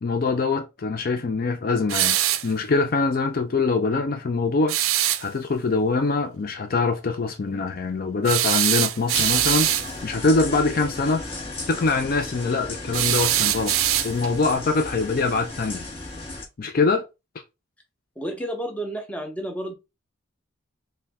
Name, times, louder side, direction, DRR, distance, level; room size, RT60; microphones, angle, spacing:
voice 1, 0.0-9.7 10.0-11.2 11.7-13.7 14.0-15.8 16.6-17.0, left 3 dB, 45° left, 0.4 m, -24 dB
sound 1, 1.9-2.5 4.7-5.2 8.2-9.9 12.9-14.4, right 12 dB, 75° right, 0.4 m, -22 dB
sound 2, 9.1-16.5, left 2 dB, 25° left, 1.4 m, -35 dB
voice 2, 18.2-19.7, right 1 dB, 5° left, 0.7 m, -31 dB
4.3 x 2.2 x 3.5 m
head